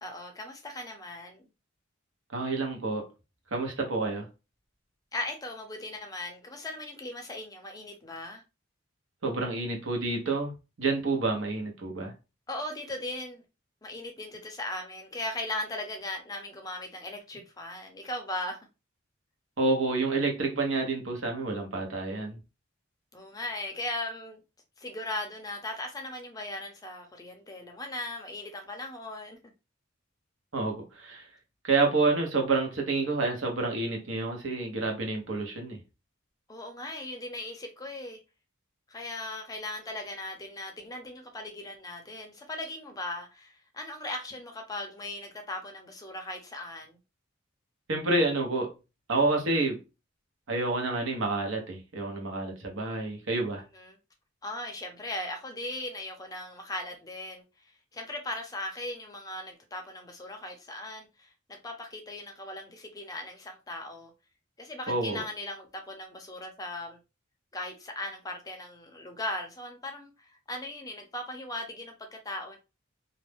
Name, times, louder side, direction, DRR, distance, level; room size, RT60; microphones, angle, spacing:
voice 1, 0.0-1.4 5.1-8.4 12.5-13.4 13.8-18.6 23.1-24.4 24.8-29.4 36.5-38.2 38.9-47.0 53.7-54.0 54.4-57.4 57.9-64.1 64.6-67.0 67.5-72.6, left 1 dB, 20° left, 0.5 m, -38 dB
voice 2, 2.3-3.0 3.5-4.3 9.2-10.5 10.8-12.1 19.6-22.4 30.5-31.3 31.6-35.8 47.9-48.7 49.1-49.8 50.5-53.6 64.9-65.2, right 3 dB, 70° right, 0.9 m, -28 dB
2.5 x 2.1 x 3.4 m
head